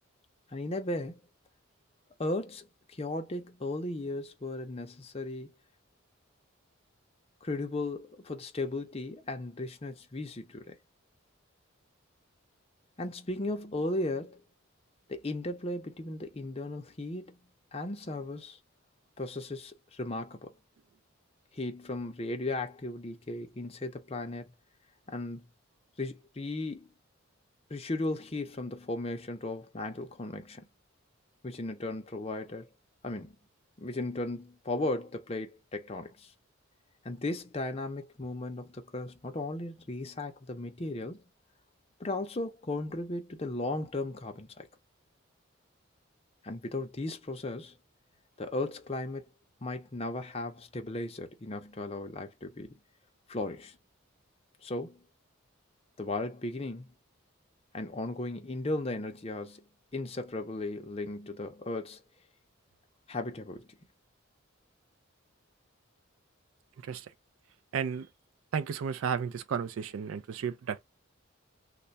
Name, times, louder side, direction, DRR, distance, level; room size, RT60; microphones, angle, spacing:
voice 1, 0.5-1.2 2.2-5.5 7.4-10.8 13.0-14.4 15.1-17.4 17.7-18.6 19.2-20.5 21.5-24.5 25.1-25.5 26.0-26.9 27.7-30.7 31.4-32.7 33.0-33.4 33.8-36.3 37.0-41.2 42.0-44.7 46.4-47.7 48.4-49.3 49.6-52.8 53.3-53.8 54.6-55.0 56.0-56.9 57.7-59.6 59.9-62.0 63.1-63.7, left 2 dB, 30° left, 0.6 m, -36 dB
voice 2, 67.7-68.1 68.5-70.9, right 7 dB, 75° right, 0.3 m, -33 dB
3.2 x 2.2 x 3.9 m
head